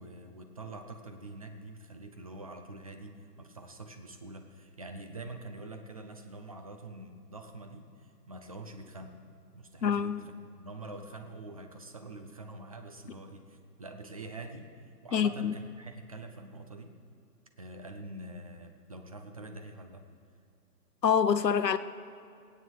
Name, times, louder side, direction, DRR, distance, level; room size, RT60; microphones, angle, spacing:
voice 1, 0.0-9.2 9.5-17.0 17.6-20.1, right 2 dB, 25° right, 0.5 m, -45 dB
voice 2, 9.8-10.2 15.1-15.5 21.0-21.8, left 7 dB, 80° left, 0.9 m, -26 dB
16.5 x 9.3 x 6.2 m
figure-of-eight pair, 150°, 49 cm